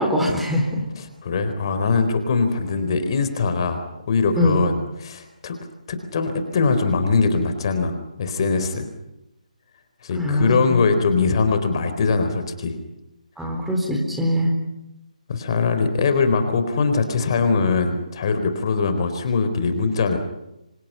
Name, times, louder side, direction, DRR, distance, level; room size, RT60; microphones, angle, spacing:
voice 1, 0.0-0.8 4.4-4.6 10.2-10.8 13.4-14.5, left 1 dB, 5° right, 0 dB, 4.0 m, -22 dB
voice 2, 1.0-3.8 4.1-5.6 5.9-8.9 10.0-12.8 15.3-20.2, left 4 dB, 40° left, 8 dB, 4.1 m, -22 dB
30.0 x 26.0 x 5.7 m, 0.90 s
figure-of-eight pair, 145°, 4 cm